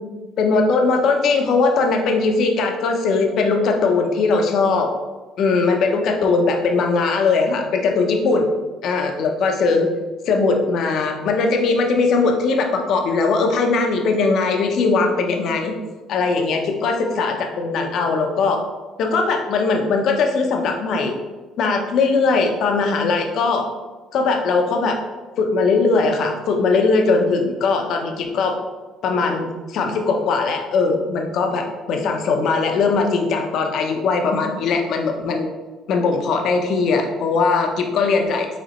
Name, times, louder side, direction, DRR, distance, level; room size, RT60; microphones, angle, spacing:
voice 1, 0.4-4.9 5.4-8.5 8.8-9.9 10.3-15.7 16.1-18.6 19.0-21.1 21.6-23.6 24.1-25.0 25.4-28.6 29.0-35.5 35.9-38.5, left 4 dB, 65° left, 3 dB, 0.7 m, -20 dB
5.0 x 3.3 x 3.0 m, 1.3 s
cardioid pair, 90°, 0 cm